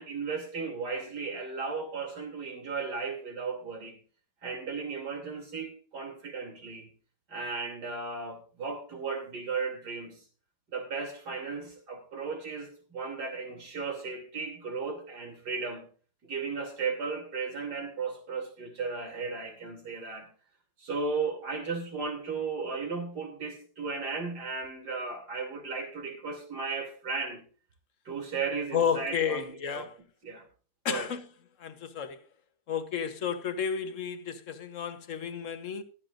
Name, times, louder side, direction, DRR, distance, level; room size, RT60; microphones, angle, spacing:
voice 1, 0.0-4.0 4.4-6.9 7.3-10.2 10.7-15.9 16.2-20.3 20.8-27.4 28.1-29.9 30.2-30.5 30.9-31.1, right 4 dB, 75° right, 3.5 m, -35 dB
voice 2, 28.7-30.0 30.8-31.2 31.6-32.2 32.7-35.8, left 7 dB, 50° left, 1.4 m, -32 dB
15.0 x 12.5 x 2.6 m
omnidirectional pair, 1.8 m